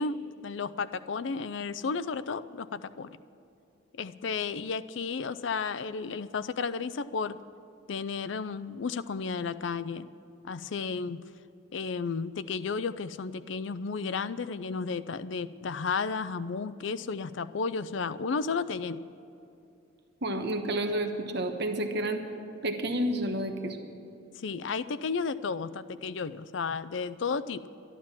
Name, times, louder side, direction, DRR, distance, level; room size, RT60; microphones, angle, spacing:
voice 1, 0.0-3.1 3.9-7.4 7.9-10.1 10.4-11.2 11.7-19.0 24.4-27.7, left 5 dB, 70° left, 14 dB, 0.5 m, -33 dB
voice 2, 20.2-22.2 22.6-23.8, right 1 dB, 60° right, 5 dB, 1.1 m, -30 dB
12.0 x 12.0 x 7.3 m, 2.7 s
head